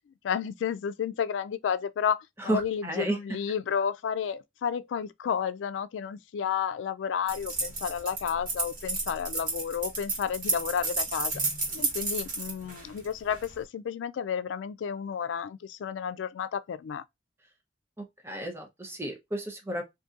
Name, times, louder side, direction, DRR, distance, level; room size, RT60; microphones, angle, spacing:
voice 1, 0.2-11.3 11.7-17.0, left 7 dB, 90° left, 0.3 m, -31 dB
voice 2, 2.4-3.2 18.2-19.8, right 1 dB, 15° right, 0.7 m, -32 dB
sound 1, 7.3-13.5, right 3 dB, 50° right, 1.5 m, -31 dB
3.8 x 2.6 x 2.4 m
head